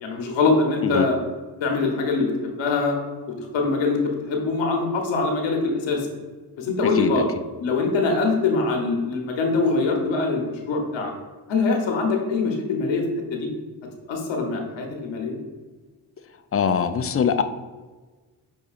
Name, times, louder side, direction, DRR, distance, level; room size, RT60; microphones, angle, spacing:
voice 1, 0.0-1.1 1.6-3.0 3.5-6.1 6.6-7.3 7.6-11.1 11.5-13.0 13.3-13.5 14.1-15.4, left 3 dB, 80° left, 1 dB, 1.0 m, -23 dB
voice 2, 6.8-7.2 16.5-17.4, left 7 dB, 35° left, 9 dB, 0.4 m, -22 dB
6.4 x 2.7 x 2.4 m, 1.3 s
supercardioid pair, 50°, 44 cm